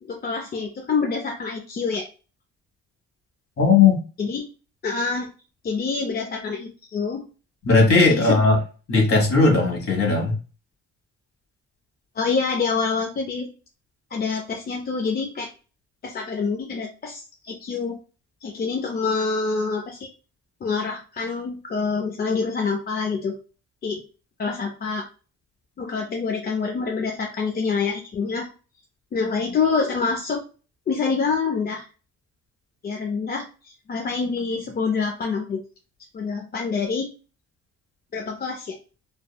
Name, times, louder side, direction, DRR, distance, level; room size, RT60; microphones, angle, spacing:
voice 1, 0.0-2.1 4.2-4.5 4.8-5.3 5.6-7.2 8.1-8.4 12.2-13.5 14.1-15.5 16.0-18.0 18.4-20.1 20.6-23.4 23.8-24.0 24.4-25.0 25.8-28.5 29.1-30.4 30.9-31.9 32.8-35.6 36.1-37.1 38.1-38.8, left 4 dB, 30° left, 2 dB, 0.5 m, -26 dB
voice 2, 3.6-4.0 7.6-8.6 8.9-10.3, left 4 dB, 45° left, 1 dB, 1.3 m, -17 dB
3.4 x 2.0 x 2.2 m, 0.35 s
cardioid pair, 90°, 30 cm